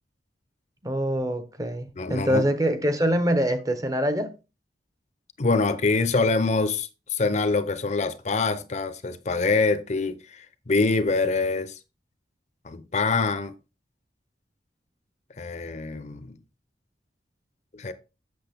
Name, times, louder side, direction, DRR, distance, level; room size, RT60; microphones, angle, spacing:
voice 1, 0.8-4.3, equal, 20° right, 0.8 m, -24 dB
voice 2, 2.0-2.4 5.4-11.7 12.6-13.5 15.4-16.4 17.7-17.9, left 3 dB, 40° left, 0.6 m, -25 dB
7.9 x 6.3 x 3.4 m
head